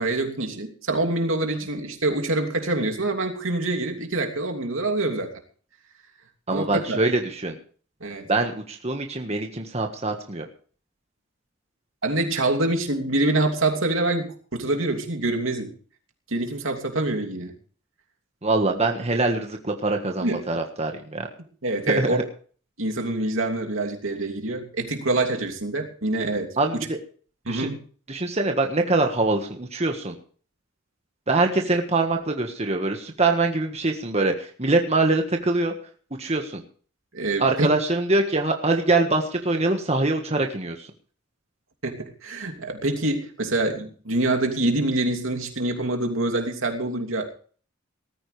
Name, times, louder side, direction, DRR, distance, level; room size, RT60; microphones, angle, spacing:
voice 1, 0.0-5.3 6.5-7.0 8.0-8.2 12.0-15.7 16.3-17.5 20.2-20.4 21.6-22.2 22.8-26.9 27.4-27.8 37.1-37.7 41.8-47.3, right 2 dB, 75° right, 3 dB, 2.9 m, -25 dB
voice 2, 6.5-7.6 8.3-10.4 18.4-21.3 21.9-22.2 26.6-27.0 27.5-27.7 28.1-30.1 31.3-35.7 36.2-36.6 37.4-40.9, right 2 dB, 30° right, 3 dB, 1.5 m, -24 dB
19.0 x 14.0 x 3.3 m, 0.42 s
head